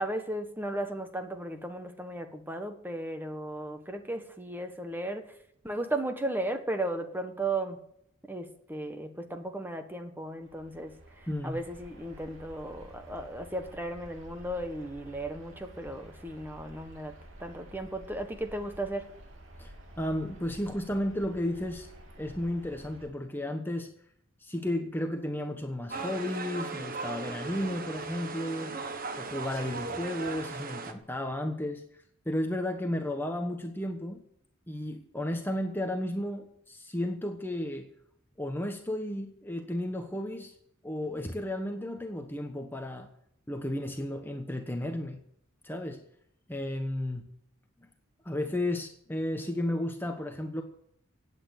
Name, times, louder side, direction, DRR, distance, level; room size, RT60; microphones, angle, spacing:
voice 1, 0.0-5.3 5.6-7.8 8.3-10.9 11.4-19.1, right 1 dB, 10° right, 7 dB, 1.5 m, -35 dB
sound 1, 10.4-23.1, right 1 dB, 65° right, 3.0 m, -51 dB
voice 2, 11.3-11.6 19.6-21.9 22.2-23.9 24.4-28.8 29.2-31.8 32.2-34.2 34.7-37.9 38.4-40.5 40.8-43.1 43.5-45.2 45.6-46.0 46.5-47.3 48.2-50.6, left 1 dB, 10° left, 4 dB, 1.1 m, -33 dB
sound 2, 25.9-30.9, right 3 dB, 45° right, 1.5 m, -37 dB
16.5 x 9.0 x 8.1 m, 0.70 s
head